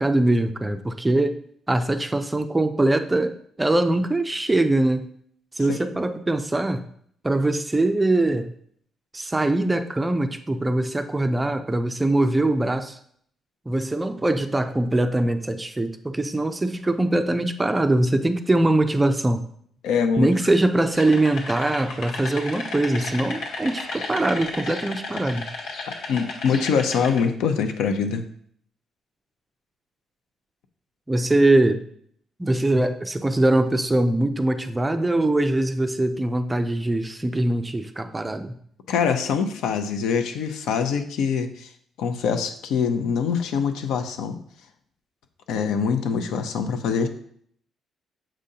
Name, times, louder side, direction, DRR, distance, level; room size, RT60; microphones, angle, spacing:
voice 1, 0.0-1.4 1.7-5.1 5.5-6.8 7.2-8.5 9.1-13.0 13.7-19.4 20.2-25.5 31.1-31.8 32.4-38.5, right 2 dB, 10° right, 8 dB, 0.3 m, -22 dB
voice 2, 19.8-20.3 26.1-28.2 38.9-41.7 42.0-44.4 45.5-47.1, left 6 dB, 85° left, 7 dB, 0.7 m, -24 dB
sound 1, 20.9-27.2, left 3 dB, 70° left, 1.3 m, -34 dB
7.4 x 5.1 x 2.8 m, 0.63 s
cardioid pair, 165°, 0 cm